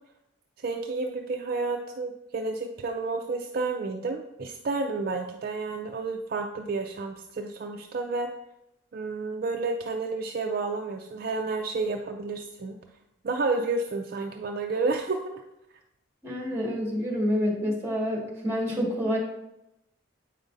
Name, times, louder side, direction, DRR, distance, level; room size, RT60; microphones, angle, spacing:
voice 1, 0.6-8.3 8.9-12.8 13.2-15.4, right 3 dB, 50° right, 3 dB, 0.4 m, -30 dB
voice 2, 16.2-19.2, equal, 15° right, -4 dB, 1.8 m, -28 dB
8.0 x 4.9 x 2.6 m, 0.88 s
head